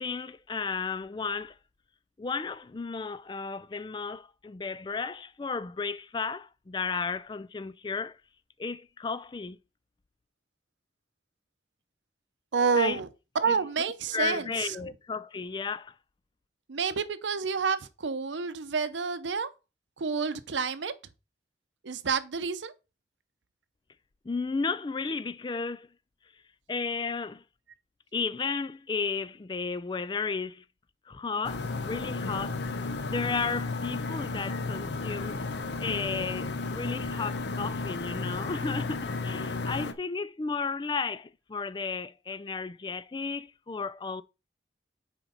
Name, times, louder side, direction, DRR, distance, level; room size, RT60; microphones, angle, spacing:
voice 1, 0.0-1.6 2.2-8.2 8.6-9.6 12.7-13.0 13.4-13.6 14.1-15.9 24.2-25.9 26.7-27.4 28.1-30.6 31.1-32.6 33.0-35.4 35.8-44.2, left 4 dB, 25° left, 0.3 m, -33 dB
voice 2, 12.5-13.1 13.3-14.8 16.7-19.5 20.0-20.9 21.8-22.7, right 5 dB, 90° right, 0.7 m, -29 dB
sound 1, 31.4-39.9, left 3 dB, 75° left, 0.7 m, -33 dB
9.6 x 4.5 x 4.0 m
head